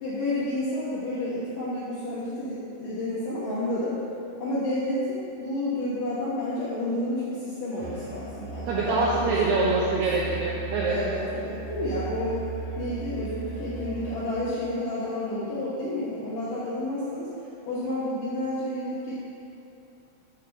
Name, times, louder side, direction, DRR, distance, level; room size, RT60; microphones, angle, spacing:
voice 1, 0.0-4.0 4.4-9.5 9.9-10.0 10.8-12.4 12.8-17.3 17.7-19.1, left 1 dB, 70° left, -9 dB, 2.1 m, -30 dB
Musical instrument, 7.8-14.6, right 6 dB, 60° right, 2.6 m, -36 dB
voice 2, 8.7-11.0, right 3 dB, 80° right, -5 dB, 2.3 m, -25 dB
9.0 x 4.5 x 6.5 m, 2.8 s
omnidirectional pair, 5.5 m